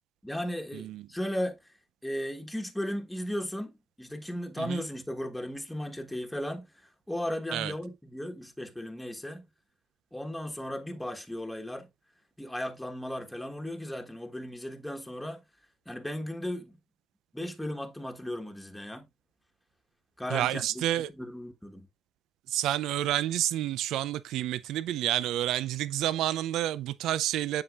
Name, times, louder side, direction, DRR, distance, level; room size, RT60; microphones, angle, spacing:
voice 1, 0.2-1.6 2.0-9.5 10.1-11.9 12.4-15.4 15.9-16.7 17.3-19.1 20.2-21.9, equal, 5° left, 1.3 m, -36 dB
voice 2, 0.7-1.1 4.6-4.8 7.5-7.7 20.3-21.1 22.5-27.6, right 13 dB, 90° right, 0.4 m, -29 dB
7.8 x 5.7 x 2.4 m
cardioid pair, 90°, 0 cm